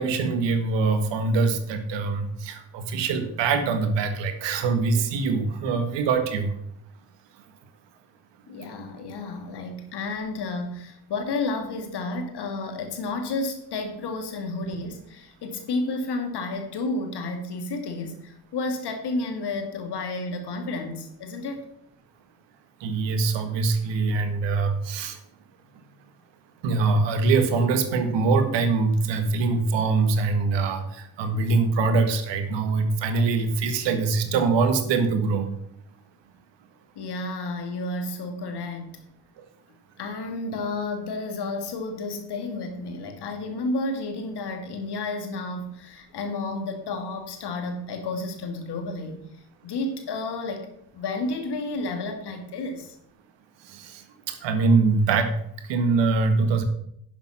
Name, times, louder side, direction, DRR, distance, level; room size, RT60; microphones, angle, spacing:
voice 1, 0.0-6.5 22.8-25.2 26.6-35.5 53.7-54.0 54.3-55.3 55.7-56.6, right 4 dB, 65° right, 1.8 m, -23 dB
voice 2, 8.5-21.6 37.0-38.9 40.0-49.2 49.6-50.7 50.9-53.0, left 2 dB, 55° left, 2.4 m, -31 dB
11.0 x 7.1 x 5.9 m
figure-of-eight pair, 40°, 47 cm